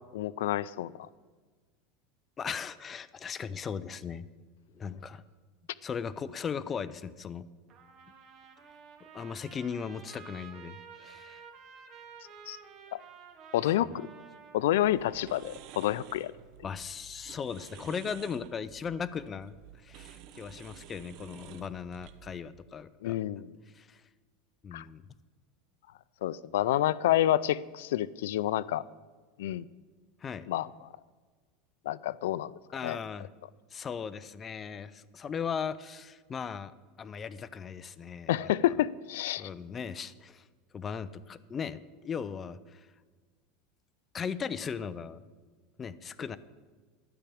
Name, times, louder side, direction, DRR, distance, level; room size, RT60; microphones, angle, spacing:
voice 1, 0.1-1.1 12.5-12.6 12.9-13.0 13.5-14.1 14.5-16.3 23.0-23.5 24.7-24.8 26.2-28.8 29.4-29.7 30.5-30.7 31.9-32.5 32.8-33.0 38.3-39.5, left 13 dB, 90° left, 19 dB, 0.4 m, -28 dB
voice 2, 2.4-4.3 4.7-5.2 5.8-7.5 9.1-11.4 16.6-23.2 23.7-24.0 24.6-25.0 30.2-30.5 32.7-33.3 33.7-38.4 39.4-40.5 40.7-42.9 44.1-45.2 45.8-46.4, left 6 dB, 20° left, 14 dB, 0.4 m, -38 dB
Trumpet, 7.7-15.9, right 7 dB, 35° right, 1.4 m, -52 dB
sound 1, 14.6-22.3, right 10 dB, 50° right, 0.7 m, -52 dB
12.0 x 5.8 x 8.6 m, 1.4 s
supercardioid pair, 160°, 0 cm